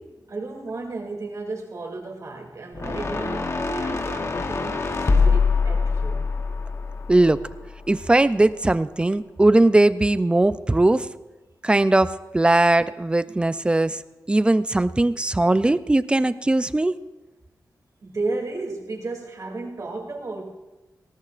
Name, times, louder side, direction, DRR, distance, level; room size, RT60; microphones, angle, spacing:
voice 1, 0.3-6.2 18.0-20.4, right 3 dB, 50° right, 0 dB, 2.6 m, -33 dB
sound 1, 2.7-8.0, left 4 dB, 40° left, 0.9 m, -24 dB
voice 2, 7.1-7.4 7.9-11.1 11.6-14.0 14.3-17.0, right 2 dB, 15° right, 14 dB, 0.3 m, -19 dB
20.0 x 17.5 x 2.5 m, 1.1 s
wide cardioid pair, 155°, 7 cm